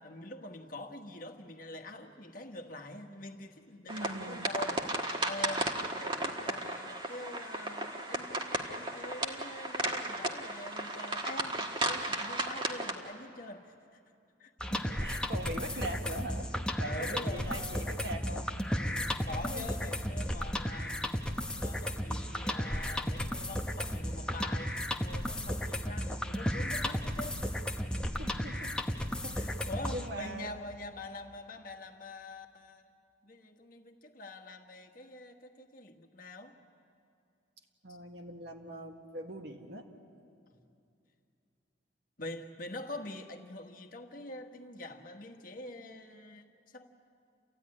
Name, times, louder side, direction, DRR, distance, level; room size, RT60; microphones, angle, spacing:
voice 1, 0.0-4.8 5.2-14.0 14.4-14.8 15.7-15.8 16.8-17.8 18.8-21.2 21.6-27.6 28.9-32.9 33.2-36.5 37.9-38.0 42.2-46.9, left 2 dB, 45° left, 4 dB, 1.5 m, -45 dB
sound 1, 3.9-12.9, right 2 dB, 25° right, 1.6 m, -35 dB
voice 2, 3.9-4.5 14.7-16.5 16.8-18.5 19.5-19.7 28.2-28.8 29.8-30.5 37.8-39.9, right 1 dB, 60° right, 2 dB, 1.9 m, -41 dB
sound 2, 14.6-30.1, equal, 5° left, 0.9 m, -34 dB
28.5 x 15.0 x 9.8 m, 2.5 s
head